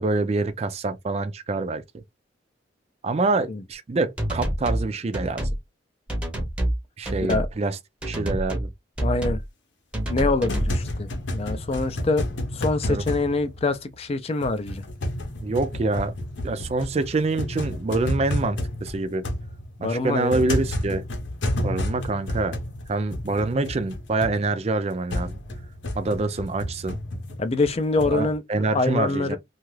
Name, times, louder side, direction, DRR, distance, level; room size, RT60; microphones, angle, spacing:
voice 1, 0.0-2.0 3.0-5.5 7.0-7.8 8.0-8.7 12.8-13.0 15.4-16.1 16.4-19.2 19.8-21.0 21.6-22.6 22.9-25.4 26.0-27.0 28.0-29.4, right 3 dB, 35° right, 0.4 m, -26 dB
sound 1, 4.2-4.9 5.1-5.6 6.1-6.8 7.1-7.5 8.0-8.7 9.0-9.5 9.9-10.8, right 1 dB, 5° right, 0.7 m, -27 dB
voice 2, 9.0-9.4 10.1-12.2 12.5-14.9 19.8-20.3 27.4-28.4 28.7-29.4, left 3 dB, 30° left, 0.4 m, -25 dB
sound 2, 10.3-14.1 14.4-28.4, left 1 dB, 70° left, 0.8 m, -31 dB
2.7 x 2.4 x 3.1 m
head